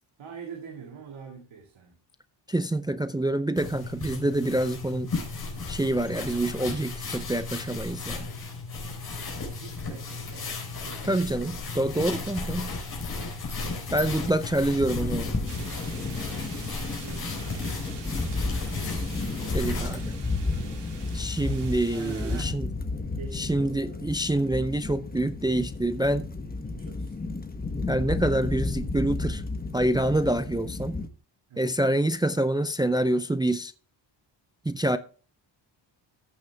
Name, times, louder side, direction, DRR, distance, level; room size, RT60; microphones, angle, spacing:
voice 1, 0.2-2.0 8.7-11.2 17.0-18.4 21.9-22.6 23.2-24.1 26.6-27.2 31.5-31.7, right 6 dB, 85° right, 2.2 m, -44 dB
voice 2, 2.5-5.1 5.7-8.3 11.1-12.7 13.9-15.3 19.5-20.1 21.1-22.7 23.3-26.3 27.9-29.4 29.7-31.0 31.6-33.7 34.7-35.0, right 1 dB, 10° right, 0.4 m, -26 dB
sound 1, 3.6-20.0, left 3 dB, 50° left, 4.0 m, -35 dB
sound 2, 14.8-31.1, left 3 dB, 20° left, 1.0 m, -32 dB
sound 3, 15.5-22.4, right 5 dB, 60° right, 2.8 m, -46 dB
14.5 x 6.4 x 3.4 m
wide cardioid pair, 130°, 46 cm